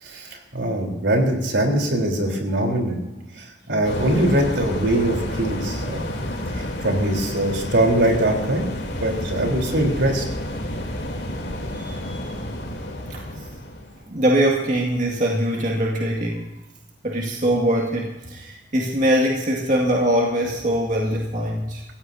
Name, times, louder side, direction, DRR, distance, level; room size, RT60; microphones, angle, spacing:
voice 1, 0.0-3.0 3.4-6.1 6.5-8.7 9.0-10.2, right 1 dB, 75° right, 1 dB, 3.7 m, -22 dB
sound 1, 3.8-14.0, left 1 dB, 65° left, 3.2 m, -30 dB
voice 2, 11.4-12.2 13.1-13.4 14.1-16.5 17.0-21.8, equal, 45° right, -1 dB, 2.0 m, -22 dB
27.0 x 16.0 x 2.7 m, 1.0 s
head